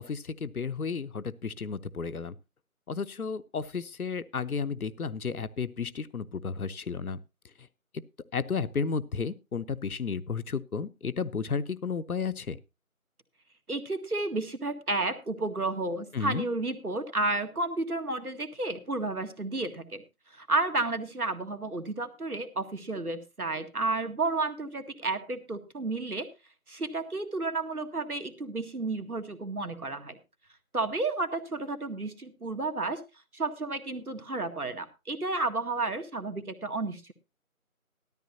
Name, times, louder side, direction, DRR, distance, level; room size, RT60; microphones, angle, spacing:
voice 1, 0.0-2.3 2.9-7.2 8.3-12.6 16.1-16.4, left 5 dB, 75° left, 15 dB, 0.8 m, -33 dB
voice 2, 13.7-20.0 20.3-26.3 26.7-30.2 30.7-33.0 33.3-37.1, right 2 dB, 85° right, 8 dB, 1.9 m, -32 dB
14.5 x 13.0 x 2.8 m, 0.26 s
figure-of-eight pair, 175°, 43 cm